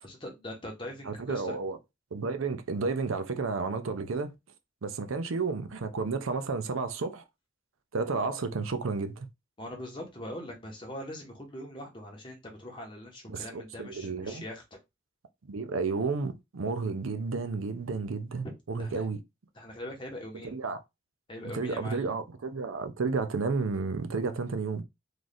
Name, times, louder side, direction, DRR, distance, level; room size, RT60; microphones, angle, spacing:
voice 1, 0.0-1.6 9.6-14.6 18.8-19.0 19.5-20.6 21.3-22.1, left 1 dB, 25° left, 1.0 m, -42 dB
voice 2, 1.1-1.8 2.1-4.3 4.8-7.2 7.9-9.3 13.3-14.4 15.5-19.2 20.5-20.8 21.4-24.8, right 4 dB, 75° right, 0.6 m, -32 dB
3.2 x 2.5 x 4.0 m
head